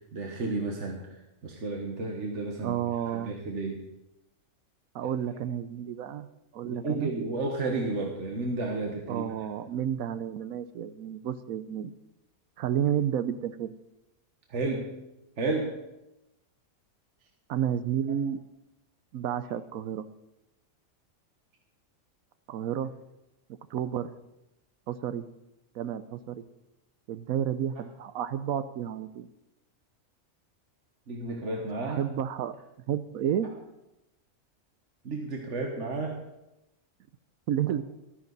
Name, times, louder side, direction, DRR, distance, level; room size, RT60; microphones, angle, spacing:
voice 1, 0.1-1.1 1.4-2.8 3.1-3.8 6.6-9.2 14.5-14.9 15.4-15.8 31.1-32.0 35.0-36.2, right 3 dB, 55° right, 1 dB, 1.6 m, -32 dB
voice 2, 2.6-3.4 4.9-6.3 6.5-7.1 9.1-11.9 12.6-13.7 17.5-18.4 19.1-20.1 22.5-22.9 23.7-24.1 24.9-25.2 25.7-26.4 27.1-29.3 31.9-32.6 32.9-33.5 37.5-37.8, right 9 dB, 80° right, 13 dB, 1.1 m, -31 dB
14.5 x 13.0 x 4.0 m, 0.93 s
omnidirectional pair, 1.5 m